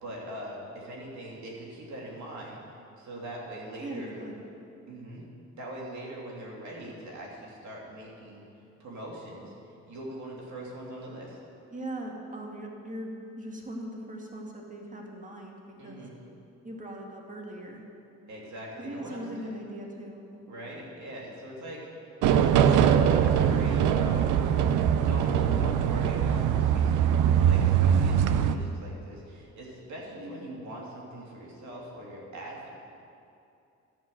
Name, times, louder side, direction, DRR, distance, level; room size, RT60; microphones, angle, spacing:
voice 1, 0.0-2.6 3.0-4.2 4.9-5.2 5.6-8.4 8.8-11.4 15.8-16.2 18.3-19.5 20.5-21.9 22.3-22.6 23.1-24.3 25.0-32.7, right 1 dB, 70° right, -3 dB, 2.7 m, -41 dB
voice 2, 3.8-4.4 11.7-16.1 16.6-17.8 18.8-20.4, right 1 dB, 25° right, 0 dB, 1.9 m, -40 dB
sound 1, 22.2-28.5, right 9 dB, 85° right, 0.6 m, -22 dB
12.0 x 5.7 x 7.6 m, 2.6 s
cardioid pair, 90°, 30 cm